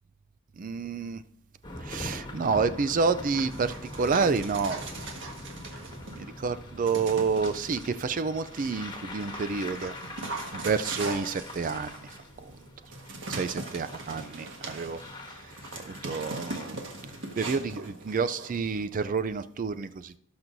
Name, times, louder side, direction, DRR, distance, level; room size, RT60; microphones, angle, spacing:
voice 1, 0.6-1.2 1.8-4.8 6.4-9.9 10.5-12.1 12.4-12.5 13.3-15.0 15.8-16.8 17.4-20.1, right 5 dB, 35° right, 0.4 m, -29 dB
sound 1, 1.6-17.3, left 1 dB, 20° left, 1.4 m, -43 dB
Dog, 3.4-6.3 6.8-7.9 8.5-18.9, right 2 dB, 55° right, 1.5 m, -40 dB
18.0 x 6.1 x 2.6 m
head